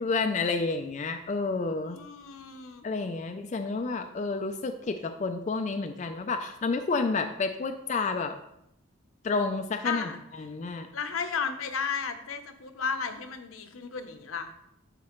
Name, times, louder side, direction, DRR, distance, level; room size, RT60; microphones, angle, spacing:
voice 1, 0.0-2.0 2.8-8.3 9.2-10.9, left 4 dB, 35° left, 6 dB, 0.3 m, -30 dB
voice 2, 1.9-2.8 9.8-10.2 10.9-14.5, left 6 dB, 80° left, 8 dB, 0.7 m, -34 dB
12.0 x 4.2 x 3.0 m, 0.79 s
head